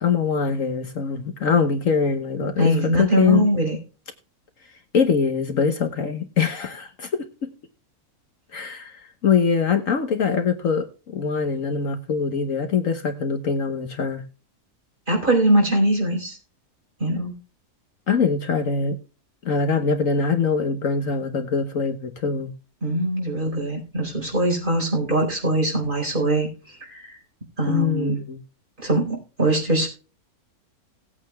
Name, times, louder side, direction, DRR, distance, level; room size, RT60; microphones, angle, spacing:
voice 1, 0.0-3.5 4.9-7.5 8.5-14.2 18.1-19.0 19.4-22.5 27.6-28.4, left 5 dB, 60° left, 1.4 m, -23 dB
voice 2, 2.6-3.8 15.1-16.4 17.0-17.3 22.8-27.1 27.6-28.2 28.8-29.9, right 1 dB, 30° right, 4.4 m, -22 dB
18.5 x 8.6 x 2.3 m
omnidirectional pair, 1.6 m